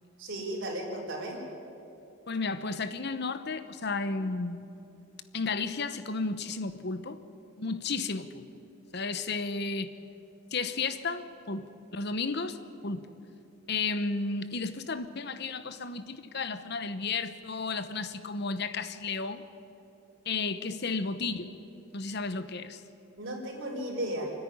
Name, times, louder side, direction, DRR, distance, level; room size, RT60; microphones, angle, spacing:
voice 1, 0.2-1.4 23.2-24.3, right 1 dB, 60° right, -2 dB, 4.8 m, -35 dB
voice 2, 2.3-4.6 5.3-7.2 7.6-8.5 8.9-9.9 10.5-12.6 12.8-13.1 13.7-19.4 20.3-21.5 21.9-22.8, left 4 dB, 50° left, 12 dB, 1.0 m, -33 dB
28.0 x 10.0 x 10.0 m, 2.8 s
head